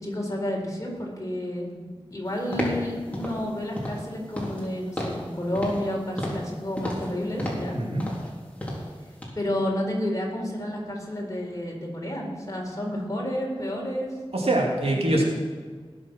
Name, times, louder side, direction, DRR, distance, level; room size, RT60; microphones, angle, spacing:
voice 1, 0.0-1.8 2.1-7.8 9.3-14.1 14.9-15.2, left 1 dB, 35° left, -2 dB, 4.2 m, -30 dB
sound 1, 2.5-2.8 3.1-3.4 3.8-4.0 4.3-4.7 5.0-5.2 5.5-5.9 6.2-6.5 6.8-7.1 7.4-7.7 8.0-8.3 8.6-8.9 9.2-9.3, left 1 dB, 15° left, 3.9 m, -31 dB
voice 2, 7.7-8.0 14.3-15.2, right 1 dB, 80° right, -1 dB, 2.8 m, -23 dB
19.0 x 7.2 x 6.1 m, 1.5 s
wide cardioid pair, 60°, 10 cm